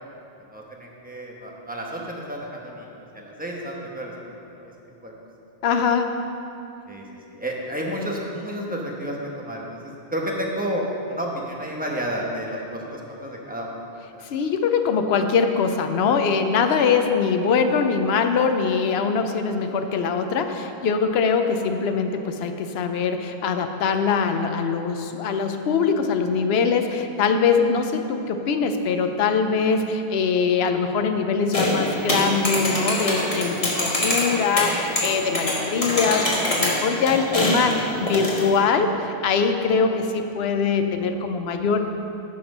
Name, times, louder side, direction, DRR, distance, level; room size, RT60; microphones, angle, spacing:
voice 1, 0.5-2.9 3.1-4.1 4.6-4.7 5.0-5.1 6.9-13.7 14.1-14.2, equal, 10° right, -2 dB, 1.1 m, -31 dB
voice 2, 5.6-6.2 14.2-41.8, left 5 dB, 75° left, 6 dB, 0.9 m, -22 dB
sound 1, 31.5-38.5, left 1 dB, 35° left, 1.6 m, -25 dB
10.5 x 6.0 x 5.3 m, 2.8 s
omnidirectional pair, 1.1 m